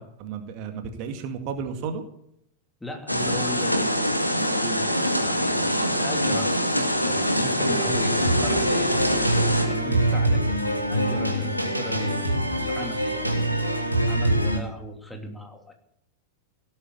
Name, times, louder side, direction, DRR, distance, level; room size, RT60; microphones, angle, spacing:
voice 1, 0.0-2.0 9.8-10.0, right 6 dB, 45° right, 7 dB, 2.1 m, -33 dB
voice 2, 2.8-8.9 9.7-15.7, left 1 dB, 5° left, 4 dB, 2.8 m, -38 dB
sound 1, 3.1-9.6, equal, 90° left, 2.0 m, -24 dB
sound 2, 7.6-14.6, right 1 dB, 90° right, 2.5 m, -24 dB
17.5 x 8.8 x 8.4 m, 0.76 s
figure-of-eight pair, 90°, 0 cm